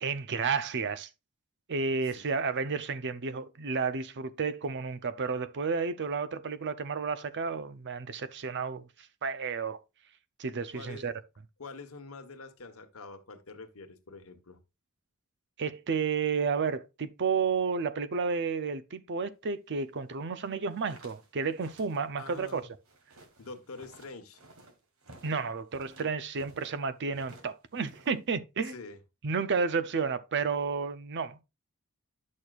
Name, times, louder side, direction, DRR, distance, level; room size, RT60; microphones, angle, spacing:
voice 1, 0.0-1.1 1.7-9.8 10.4-11.1 15.6-22.7 25.2-28.7 29.2-31.4, right 5 dB, 55° right, 0.6 m, -31 dB
voice 2, 10.7-11.1 11.6-14.6 22.2-22.7 23.4-24.4 28.7-29.0, left 3 dB, 70° left, 1.2 m, -46 dB
sound 1, 20.5-26.8 27.1-28.3, right 2 dB, 70° right, 1.6 m, -55 dB
10.5 x 6.4 x 2.4 m
head